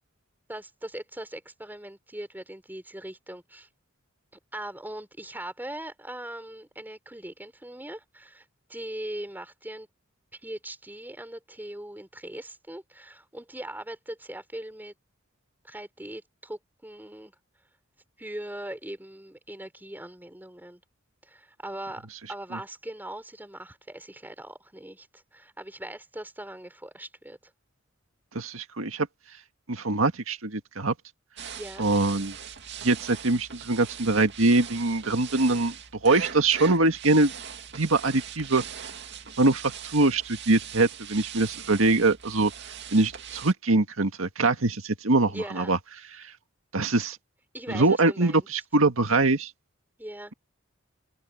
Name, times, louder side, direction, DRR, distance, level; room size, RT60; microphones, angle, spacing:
voice 1, 0.5-3.7 4.5-8.4 8.7-9.9 10.3-14.9 15.6-17.3 18.2-20.8 21.2-27.4 31.6-31.9 45.3-45.7 47.5-48.5 50.0-50.3, right 1 dB, 10° right, 3.8 m, -40 dB
voice 2, 28.3-29.1 29.7-30.9 31.8-32.4 32.8-35.7 36.0-37.3 37.7-38.6 39.4-42.5 42.9-45.8 46.2-46.3 46.7-47.2 47.7-49.5, right 2 dB, 85° right, 1.9 m, -23 dB
sound 1, 31.4-43.5, right 8 dB, 60° right, 2.2 m, -41 dB
open air
head